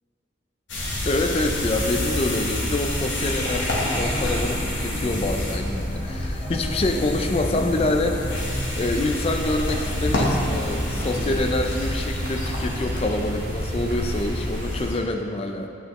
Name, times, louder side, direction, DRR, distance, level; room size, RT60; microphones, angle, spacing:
sound 1, 0.7-14.9, left 1 dB, 70° left, 1.2 m, -27 dB
voice 1, 1.1-8.4 8.7-15.7, left 2 dB, 30° left, 5 dB, 0.4 m, -26 dB
sound 2, 3.6-11.4, equal, 10° left, 1.6 m, -35 dB
sound 3, 10.0-15.0, right 1 dB, 50° right, 1.7 m, -43 dB
8.5 x 6.5 x 3.0 m, 2.5 s
head